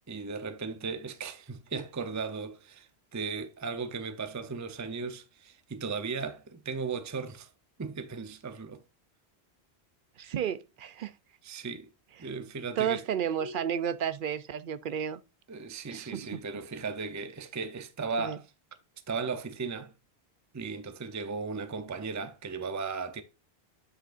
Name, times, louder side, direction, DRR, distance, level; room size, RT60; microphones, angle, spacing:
voice 1, 0.1-7.5 7.8-8.8 11.4-11.9 12.2-13.0 13.4-13.7 15.5-18.5 19.1-19.9 20.5-23.2, right 4 dB, 20° right, 0.5 m, -36 dB
voice 2, 10.2-11.1 12.8-15.2 15.9-16.4 18.2-18.4, right 9 dB, 60° right, 0.6 m, -32 dB
7.8 x 6.5 x 2.5 m
omnidirectional pair, 1.1 m